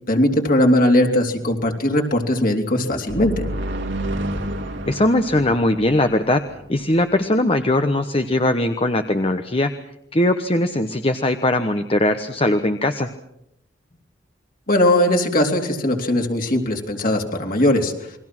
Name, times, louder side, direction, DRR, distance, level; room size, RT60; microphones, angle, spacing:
voice 1, 0.1-3.5 14.7-17.9, left 1 dB, 50° left, 3 dB, 3.6 m, -19 dB
sound 1, 3.1-6.8, right 1 dB, 70° right, 2.3 m, -29 dB
voice 2, 4.9-6.4 6.7-9.7 10.1-13.1, left 1 dB, 30° left, 7 dB, 1.1 m, -20 dB
29.5 x 22.0 x 6.1 m, 0.78 s
head